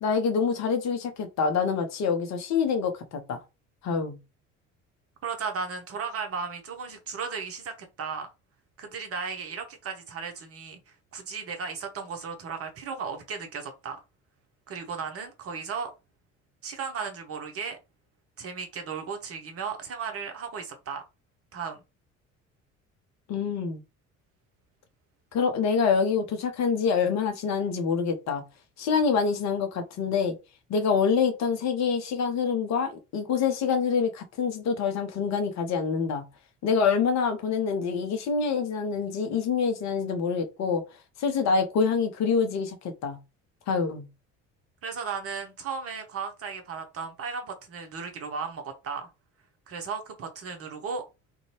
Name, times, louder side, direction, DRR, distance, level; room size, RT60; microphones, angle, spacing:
voice 1, 0.0-3.4 3.8-4.2 23.3-23.8 25.3-28.4 28.8-30.3 30.7-36.2 36.6-40.8 41.2-42.8 43.0-43.2 43.7-44.0, left 5 dB, 45° left, 0.7 m, -26 dB
voice 2, 5.2-8.3 8.8-10.8 11.1-14.0 14.7-15.9 16.6-17.8 18.4-21.0 21.5-21.8 44.8-49.1 49.7-51.0, right 5 dB, 35° right, 0.7 m, -35 dB
2.6 x 2.2 x 2.9 m
figure-of-eight pair, 55°, 39 cm